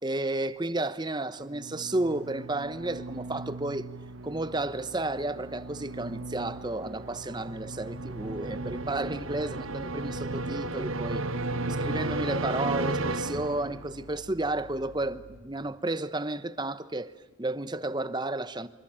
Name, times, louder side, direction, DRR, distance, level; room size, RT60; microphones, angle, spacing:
voice 1, 0.0-3.9 4.2-11.2 11.8-17.1 17.4-18.7, right 2 dB, 20° right, 0.9 m, -32 dB
sound 1, 1.4-14.0, right 2 dB, 70° right, 1.4 m, -35 dB
sound 2, 8.1-15.4, left 1 dB, 40° left, 5.0 m, -51 dB
26.0 x 26.0 x 8.9 m
head